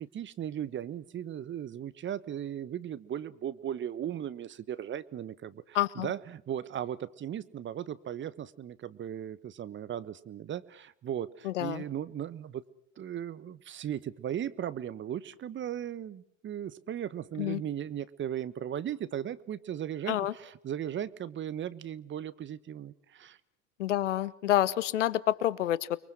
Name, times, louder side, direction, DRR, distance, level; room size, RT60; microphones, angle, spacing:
voice 1, 0.0-12.6 13.0-23.4, right 10 dB, 30° right, 16 dB, 1.2 m, -37 dB
voice 2, 5.7-6.1 11.4-11.8 17.4-17.6 20.1-20.3 23.8-26.0, left 13 dB, 80° left, 20 dB, 1.1 m, -28 dB
30.0 x 23.0 x 6.2 m, 0.66 s
hypercardioid pair, 80°, 36 cm